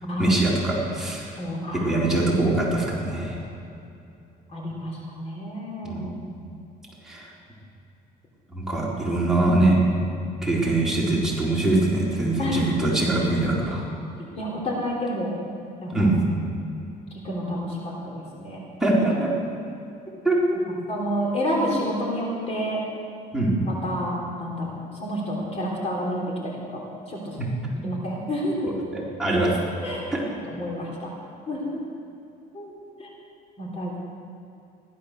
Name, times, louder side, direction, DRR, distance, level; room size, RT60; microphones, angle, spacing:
voice 1, 0.2-1.3 1.8-3.4 5.8-6.1 7.1-7.3 8.5-9.8 10.4-13.8 15.9-16.2 18.8-19.3 20.2-20.6 23.3-23.6 28.6-29.5, right 2 dB, 5° right, -6 dB, 4.0 m, -23 dB
voice 2, 1.4-1.9 4.5-6.3 8.5-8.8 12.4-12.7 14.2-15.3 15.8-16.1 17.2-18.6 20.9-22.8 23.7-27.4 27.8-28.7 29.8-30.0 30.4-31.1 31.5-31.8 32.5-32.7 33.0-33.1 33.6-34.0, equal, 40° left, -3 dB, 3.7 m, -29 dB
15.5 x 12.0 x 6.7 m, 2.6 s
cardioid pair, 110°, 17 cm